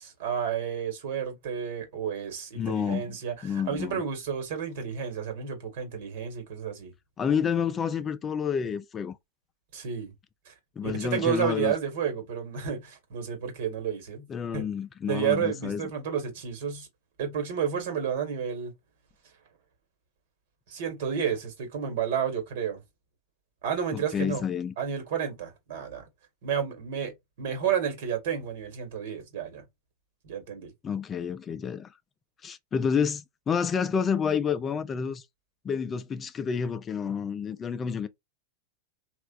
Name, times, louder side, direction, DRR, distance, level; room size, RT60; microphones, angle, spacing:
voice 1, 0.0-6.9 9.7-10.1 10.5-10.6 10.8-14.3 14.5-14.6 15.1-16.9 17.2-18.7 20.7-22.8 23.6-24.4 24.8-26.0 26.4-27.1 27.4-29.6 30.2-30.7, right 8 dB, 65° right, 1.4 m, -31 dB
voice 2, 2.6-3.2 3.4-4.0 7.2-9.2 10.8-11.7 14.3-15.8 23.9-24.7 30.8-31.9 32.4-35.2 35.6-38.1, left 7 dB, 25° left, 0.4 m, -29 dB
3.2 x 2.4 x 2.4 m
hypercardioid pair, 105°, 0 cm